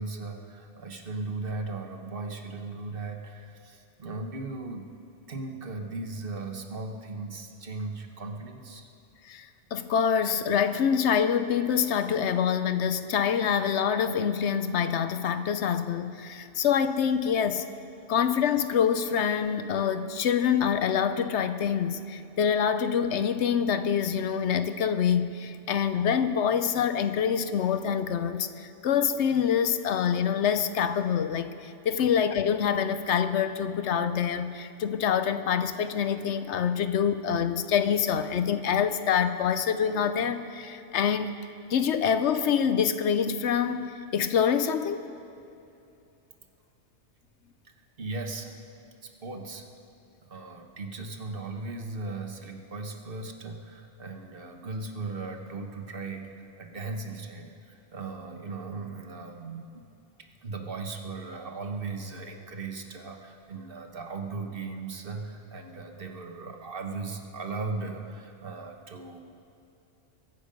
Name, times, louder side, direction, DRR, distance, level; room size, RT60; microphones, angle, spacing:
voice 1, 0.0-4.9 5.3-8.9 32.0-32.1 48.0-48.6 49.0-49.7 50.3-59.8 60.4-69.2, right 3 dB, 50° right, 4 dB, 1.4 m, -37 dB
voice 2, 9.2-17.7 18.1-41.3 41.7-45.0, left 7 dB, 75° left, 11 dB, 0.9 m, -26 dB
23.0 x 9.5 x 5.3 m, 2.7 s
omnidirectional pair, 1.2 m